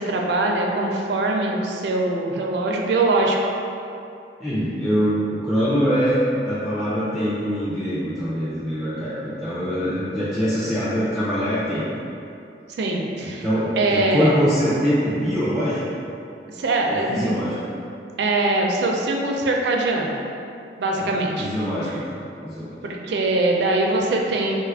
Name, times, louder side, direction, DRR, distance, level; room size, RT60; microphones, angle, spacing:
voice 1, 0.0-3.5 12.8-13.4 13.8-14.3 16.6-17.4 18.2-20.2 20.8-21.5 22.8-24.5, right 2 dB, 70° right, 0 dB, 0.4 m, -22 dB
voice 2, 4.4-11.9 13.2-15.8 16.9-17.6 21.0-22.2 22.4-22.8, equal, ahead, -11 dB, 0.4 m, -23 dB
3.0 x 2.3 x 3.4 m, 2.6 s
head